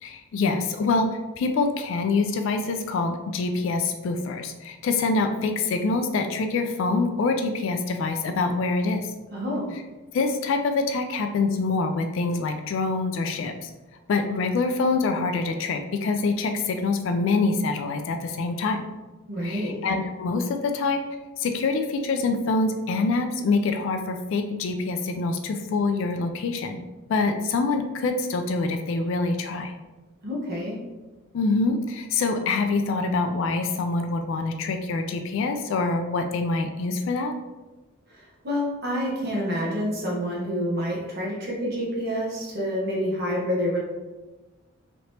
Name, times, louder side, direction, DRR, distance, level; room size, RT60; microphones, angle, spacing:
voice 1, 0.0-1.1 1.4-9.1 10.1-13.7 14.1-18.8 19.4-21.0 21.4-26.8 27.1-29.7 31.3-37.3, left 3 dB, 60° left, 7 dB, 0.3 m, -25 dB
voice 2, 9.3-9.8 19.3-19.8 30.2-30.8 38.1-43.8, equal, 50° right, -5 dB, 1.1 m, -28 dB
3.2 x 2.9 x 2.7 m, 1.1 s
head